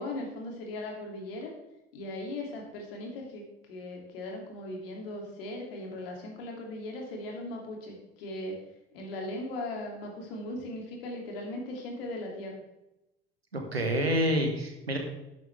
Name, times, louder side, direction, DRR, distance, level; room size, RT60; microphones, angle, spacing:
voice 1, 0.0-1.5 1.9-8.6 8.9-12.6, left 1 dB, 65° left, 1 dB, 2.7 m, -38 dB
voice 2, 13.5-15.0, equal, 85° right, 3 dB, 1.6 m, -28 dB
11.0 x 11.0 x 3.4 m, 0.92 s
figure-of-eight pair, 65°, 30 cm